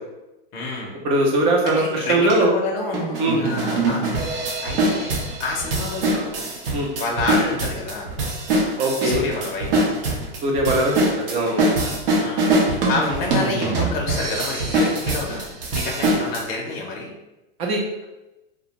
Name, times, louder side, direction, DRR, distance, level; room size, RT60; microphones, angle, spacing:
voice 1, 0.5-1.0 1.6-5.1 5.4-6.5 6.9-8.1 9.0-9.9 12.2-17.1, left 3 dB, 35° left, -1 dB, 0.5 m, -28 dB
voice 2, 1.0-2.5 3.2-3.4 6.7-6.9 8.8-9.2 10.4-11.7 17.6-18.0, right 1 dB, 20° right, 0 dB, 0.3 m, -21 dB
sound 1, 1.7-1.8 2.3-2.4 2.9-16.4, right 2 dB, 70° right, 0.8 m, -23 dB
2.4 x 2.1 x 2.9 m, 0.98 s
supercardioid pair, 145°, 29 cm